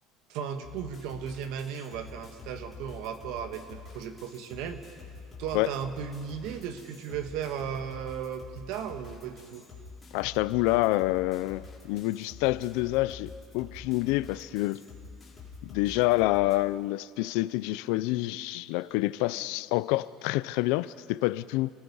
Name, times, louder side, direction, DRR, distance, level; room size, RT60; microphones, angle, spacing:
voice 1, 0.3-4.8 5.4-9.6, right 8 dB, 60° right, 7 dB, 1.7 m, -36 dB
sound 1, 0.6-16.6, left 4 dB, 15° left, 4.0 m, -47 dB
voice 2, 10.1-14.8 15.6-21.7, left 18 dB, 70° left, 17 dB, 0.5 m, -27 dB
29.0 x 19.0 x 5.6 m, 2.3 s
cardioid pair, 175°, 0 cm